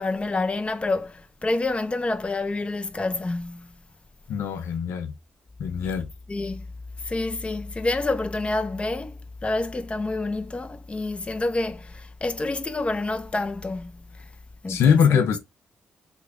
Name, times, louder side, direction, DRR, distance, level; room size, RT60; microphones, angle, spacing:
voice 1, 0.0-3.7 6.3-6.6 7.0-14.2 14.6-15.3, left 2 dB, 25° left, 0.6 m, -28 dB
voice 2, 4.3-5.1 5.6-6.1 14.7-15.4, left 7 dB, 75° left, 0.6 m, -22 dB
3.3 x 2.2 x 3.6 m
hypercardioid pair, 45°, 5 cm